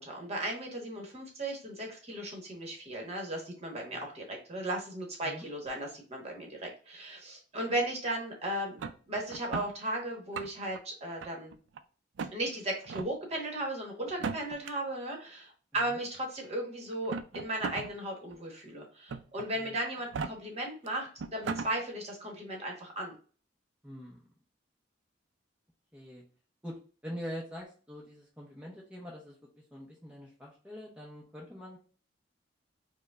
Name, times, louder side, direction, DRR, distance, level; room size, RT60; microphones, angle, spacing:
voice 1, 0.0-8.8 9.1-11.5 12.3-23.1, right 1 dB, 35° right, 0 dB, 1.1 m, -36 dB
sound 1, 8.8-9.7 10.2-10.8 11.2-11.8 12.2-12.3 12.8-13.1 14.1-14.7 15.8-15.9 16.9-17.9 18.3-18.4 19.1-19.5 20.0-20.3 20.9-21.0 21.2-21.7, right 5 dB, 70° right, 0.4 m, -37 dB
voice 2, 23.8-24.2 25.9-26.2 26.6-29.4 29.7-31.8, equal, 5° right, -4 dB, 0.6 m, -44 dB
4.7 x 2.1 x 2.3 m, 0.40 s
head